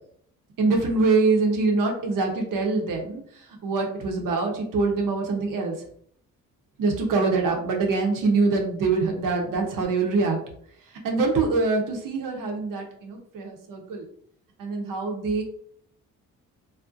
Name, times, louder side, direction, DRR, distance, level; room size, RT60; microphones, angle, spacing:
voice 1, 0.6-3.2 3.6-5.7 6.8-10.4 11.0-14.1 14.6-15.4, right 3 dB, 60° right, 2 dB, 0.7 m, -24 dB
2.5 x 2.1 x 2.4 m, 0.63 s
supercardioid pair, 60°, 36 cm